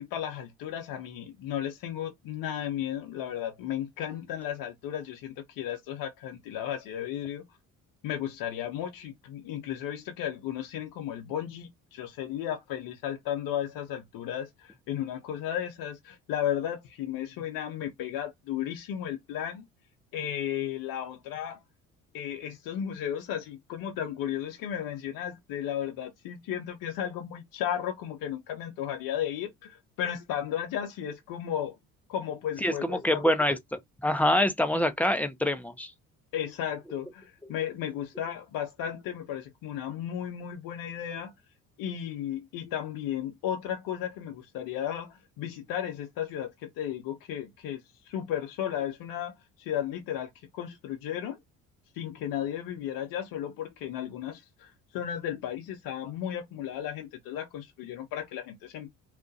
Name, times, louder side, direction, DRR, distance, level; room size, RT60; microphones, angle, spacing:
voice 1, 0.0-7.4 8.0-19.6 20.1-21.6 22.1-31.8 32.1-33.2 36.3-41.3 41.8-51.4 51.9-58.9, left 10 dB, 65° left, 0.6 m, -34 dB
voice 2, 32.6-35.9, left 1 dB, 5° left, 0.5 m, -26 dB
2.3 x 2.1 x 2.5 m
hypercardioid pair, 65°, 36 cm